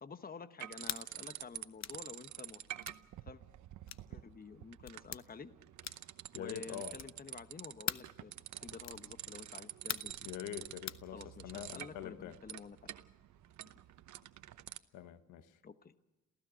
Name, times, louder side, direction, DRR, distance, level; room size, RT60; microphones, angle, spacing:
voice 1, 0.0-2.6 3.3-3.4 4.1-5.5 6.3-10.3 11.1-13.0 15.6-15.9, left 5 dB, 30° left, 1.1 m, -50 dB
sound 1, 0.6-1.6 1.9-14.8, right 12 dB, 70° right, 1.0 m, -48 dB
sound 2, 0.8-1.1 1.8-2.0 2.8-3.0 3.9-4.1 4.8-5.2 5.8-6.2 6.9-7.2 7.9-8.1 8.8-9.1 9.9-10.2 10.9-11.0, left 11 dB, 60° left, 0.9 m, -41 dB
voice 2, 6.3-7.0 10.2-12.4 14.9-15.6, left 11 dB, 80° left, 1.2 m, -45 dB
27.5 x 16.0 x 6.3 m
cardioid pair, 90°, 30 cm